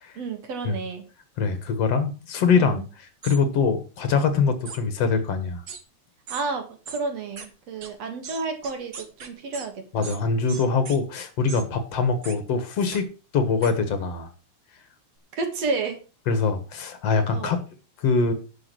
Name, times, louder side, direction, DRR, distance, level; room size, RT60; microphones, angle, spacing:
voice 1, 0.2-1.1 2.5-2.9 6.3-10.1 11.5-11.7 15.3-16.0 17.3-17.6, right 4 dB, 60° right, 5 dB, 3.0 m, -31 dB
voice 2, 1.4-2.8 3.2-5.6 9.9-13.1 13.3-14.3 16.3-17.6 18.0-18.3, left 5 dB, 60° left, 10 dB, 2.4 m, -23 dB
sound 1, 3.2-3.4 4.6-4.8 5.7-5.8 6.3-6.4 6.8-7.0 7.4-7.5 7.8-7.9 8.2-9.7 10.0-10.2 10.5-11.0 11.5-11.6 12.2-12.4 12.9-13.0 13.6-13.7, right 5 dB, 45° right, 1.4 m, -38 dB
11.0 x 6.2 x 6.2 m, 0.33 s
omnidirectional pair, 3.3 m